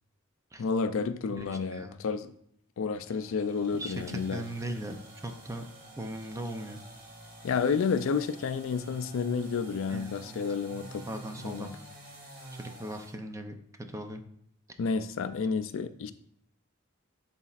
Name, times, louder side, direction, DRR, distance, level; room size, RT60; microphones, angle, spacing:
voice 1, 0.6-2.3 2.8-4.4 7.4-11.1 11.4-11.8 14.8-16.1, left 5 dB, 65° left, 11 dB, 0.4 m, -30 dB
voice 2, 1.3-2.0 3.7-5.0 5.2-5.6 6.0-6.8 9.9-10.3 11.1-11.8 12.6-13.6 13.9-14.2, right 1 dB, 15° right, 6 dB, 0.5 m, -39 dB
sound 1, 2.9-13.2, right 1 dB, 45° right, 1.9 m, -49 dB
11.0 x 4.1 x 2.4 m, 0.69 s
head